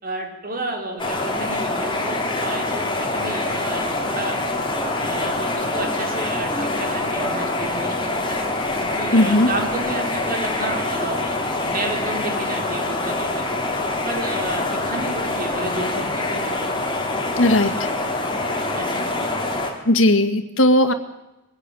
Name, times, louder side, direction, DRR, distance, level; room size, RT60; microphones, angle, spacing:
voice 1, 0.0-4.3 5.0-8.4 8.8-13.5 14.0-16.6 18.7-19.1, right 2 dB, 45° right, 3 dB, 4.6 m, -31 dB
sound 1, 1.0-19.7, left 2 dB, 25° left, 3.7 m, -25 dB
sound 2, 4.7-8.2, equal, 5° left, 7.4 m, -36 dB
voice 2, 9.1-9.5 17.4-17.9 19.9-20.9, left 1 dB, 80° left, 7 dB, 2.1 m, -17 dB
22.5 x 15.0 x 9.9 m, 0.96 s
head